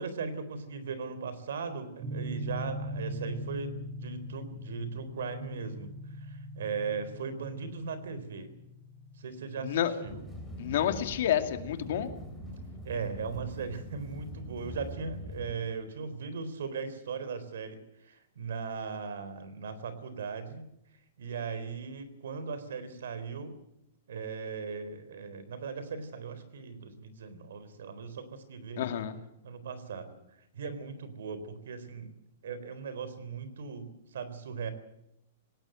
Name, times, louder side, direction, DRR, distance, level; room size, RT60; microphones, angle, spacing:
voice 1, 0.0-3.7 4.0-5.9 6.2-8.5 9.2-10.2 12.8-20.7 21.2-23.6 24.1-28.9 29.4-30.1 30.5-32.1 32.4-34.7, right 5 dB, 80° right, 13 dB, 4.0 m, -38 dB
sound 1, 2.0-12.1, equal, 20° right, 2.0 m, -42 dB
voice 2, 9.6-9.9 10.6-12.1 28.8-29.1, left 10 dB, 55° left, 8 dB, 2.3 m, -29 dB
sound 2, 10.0-15.5, equal, 5° right, 3.7 m, -43 dB
19.0 x 18.0 x 9.1 m, 0.81 s
supercardioid pair, 175°, 0 cm